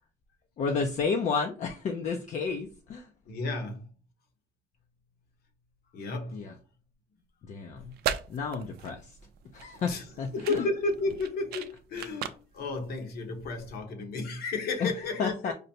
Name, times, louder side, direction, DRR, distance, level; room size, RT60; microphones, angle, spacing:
voice 1, 0.6-3.1 6.3-6.5 7.4-7.9 8.3-9.2 9.5-10.7 14.8-14.9 15.2-15.5, left 5 dB, 45° left, 0.5 m, -31 dB
voice 2, 3.3-3.9 5.9-6.5 9.9-10.0 10.3-15.5, left 3 dB, 65° left, 1.1 m, -33 dB
sound 1, 7.8-13.8, right 9 dB, 70° right, 0.4 m, -38 dB
5.1 x 2.1 x 2.8 m
cardioid pair, 110°, 17 cm